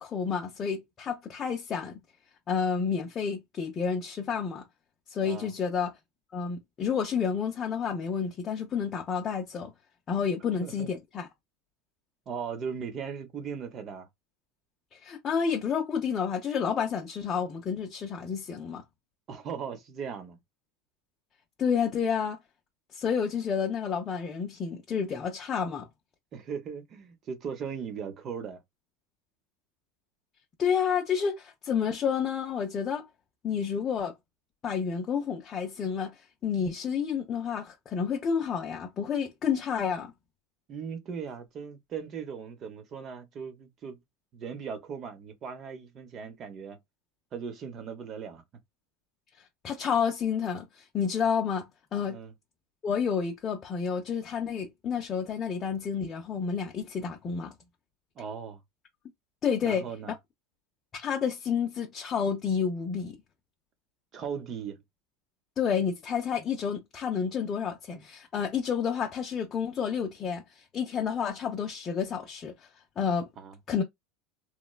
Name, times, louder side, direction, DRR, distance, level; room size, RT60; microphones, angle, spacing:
voice 1, 0.0-2.0 2.5-4.6 5.1-5.9 6.3-9.7 10.1-11.3 14.9-18.8 21.6-22.4 22.9-25.9 30.6-33.1 33.4-34.1 34.6-36.1 36.4-40.1 49.6-52.2 52.8-57.5 59.4-59.9 60.9-63.2 65.6-72.5 73.0-73.3 73.7-73.8, left 6 dB, 35° left, 0.6 m, -30 dB
voice 2, 5.2-5.5 10.6-10.9 12.3-14.1 19.3-20.4 26.3-28.6 40.7-44.0 44.3-46.8 47.3-48.4 52.1-52.3 58.2-58.6 59.6-60.1 64.1-64.8 73.4-73.6, right 6 dB, 40° right, 0.8 m, -38 dB
3.1 x 2.2 x 2.2 m
supercardioid pair, 110°, 0 cm